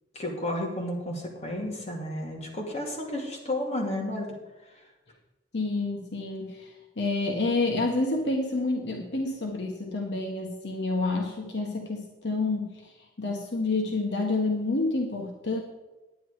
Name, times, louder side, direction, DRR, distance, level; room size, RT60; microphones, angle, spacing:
voice 1, 0.1-4.3, left 1 dB, 35° left, -1 dB, 2.4 m, -32 dB
voice 2, 5.5-6.7 7.0-12.9 13.2-15.6, left 3 dB, 70° left, 1 dB, 1.4 m, -28 dB
10.0 x 9.5 x 4.8 m, 1.1 s
head